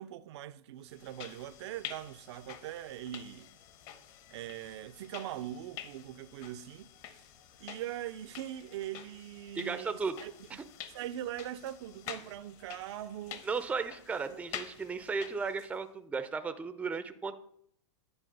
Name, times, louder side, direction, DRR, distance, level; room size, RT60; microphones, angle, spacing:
voice 1, 0.0-3.5 4.3-6.9 7.6-13.5 14.3-14.4, right 12 dB, 65° right, 0.5 m, -42 dB
sound 1, 0.9-15.8, left 10 dB, 45° left, 0.9 m, -48 dB
voice 2, 9.6-10.2 10.5-10.6 13.4-17.4, right 5 dB, 10° right, 0.4 m, -35 dB
10.0 x 4.6 x 5.2 m
hypercardioid pair, 125°, 15 cm